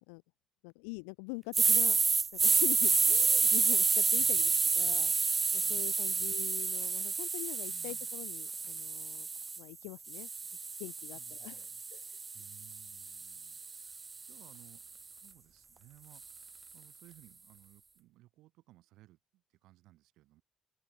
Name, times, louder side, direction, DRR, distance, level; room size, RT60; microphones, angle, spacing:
voice 1, 0.6-2.0 2.4-5.3 5.5-9.3 9.6-10.3 10.8-12.2, left 38 dB, 85° left, 0.7 m, -44 dB
sound 1, 1.5-9.6 10.1-14.3, right 4 dB, 40° right, 0.4 m, -30 dB
voice 2, 4.1-5.0 5.6-6.5 7.7-8.1 11.1-11.8 12.3-20.4, right 17 dB, 75° right, 7.7 m, -61 dB
hypercardioid pair, 45°, 0 cm